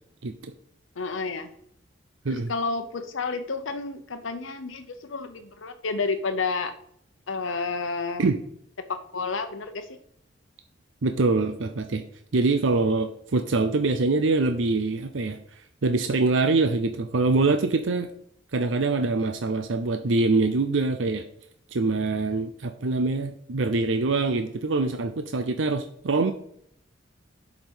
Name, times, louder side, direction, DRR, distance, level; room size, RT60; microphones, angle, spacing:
voice 1, 1.0-1.5 2.3-6.7 7.3-8.2 8.8-10.0, left 4 dB, 85° left, 7 dB, 0.8 m, -30 dB
voice 2, 11.0-12.0 12.3-15.4 15.8-18.1 18.5-21.2 21.7-26.3, right 3 dB, 75° right, 7 dB, 0.6 m, -24 dB
7.4 x 5.1 x 5.4 m, 0.68 s
head